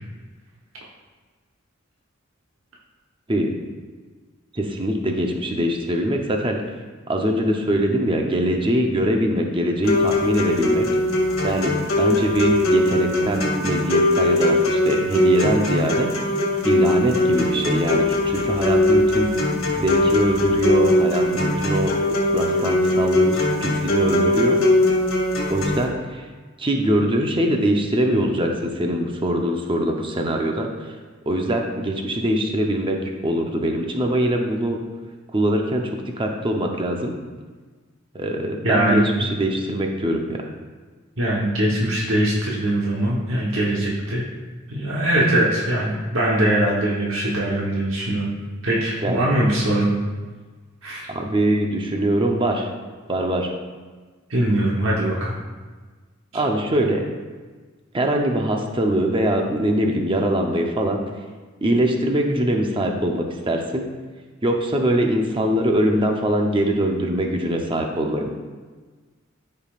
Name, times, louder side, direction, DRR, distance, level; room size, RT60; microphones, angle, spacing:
voice 1, 4.5-6.6 7.1-10.9 11.4-16.1 16.6-19.3 19.8-21.9 22.3-24.6 25.5-26.3 26.6-30.9 31.3-33.0 33.2-34.8 35.3-37.2 38.1-40.5 49.0-49.3 51.1-52.7 53.1-53.5 56.3-57.0 57.9-61.0 61.6-63.8 64.4-68.3, right 1 dB, 25° right, 2 dB, 0.7 m, -22 dB
sound 1, 9.8-25.8, left 1 dB, 75° left, 1.9 m, -20 dB
voice 2, 38.6-39.1 41.2-44.3 44.7-48.3 48.6-49.9 50.8-51.1 54.3-55.3, right 1 dB, 65° right, -4 dB, 1.2 m, -21 dB
13.0 x 5.5 x 2.5 m, 1.4 s
head